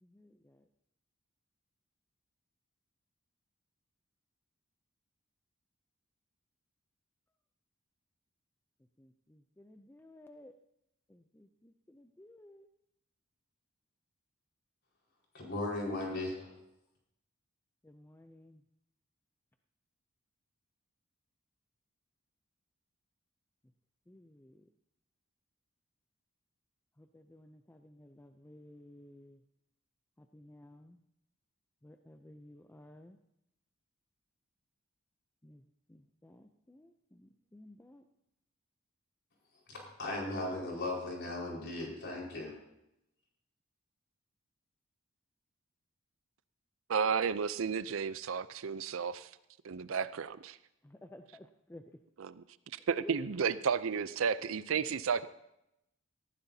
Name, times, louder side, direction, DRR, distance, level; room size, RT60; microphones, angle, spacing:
voice 1, 0.0-0.6 9.0-10.5 11.1-12.7 17.8-18.6 24.1-24.6 27.0-29.4 30.2-31.0 31.8-33.2 35.4-35.6 35.9-38.0 50.8-51.8 53.0-53.2, left 1 dB, 10° left, 7 dB, 0.5 m, -55 dB
voice 2, 15.3-16.5 39.7-42.5, left 2 dB, 55° left, -2 dB, 4.7 m, -37 dB
voice 3, 46.9-49.3 49.6-50.6 52.2-52.4 52.7-55.3, right 6 dB, 70° right, 15 dB, 0.5 m, -32 dB
18.5 x 14.0 x 2.8 m, 0.83 s
head